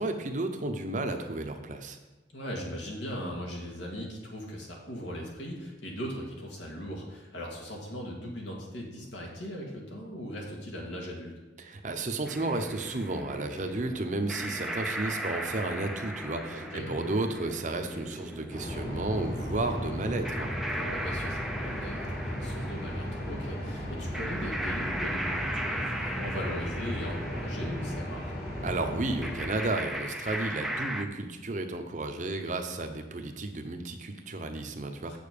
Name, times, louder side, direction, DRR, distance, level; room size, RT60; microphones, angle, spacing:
voice 1, 0.0-2.0 11.6-20.5 28.6-35.2, right 2 dB, 40° right, 6 dB, 0.7 m, -33 dB
voice 2, 2.3-11.4 16.5-17.0 20.7-28.4 35.1-35.2, equal, 85° left, -1 dB, 2.2 m, -39 dB
sound 1, 12.3-31.0, right 1 dB, ahead, 0.5 m, -38 dB
sound 2, 18.5-29.4, equal, 55° left, 2.6 m, -36 dB
7.8 x 6.7 x 5.2 m, 1.2 s
head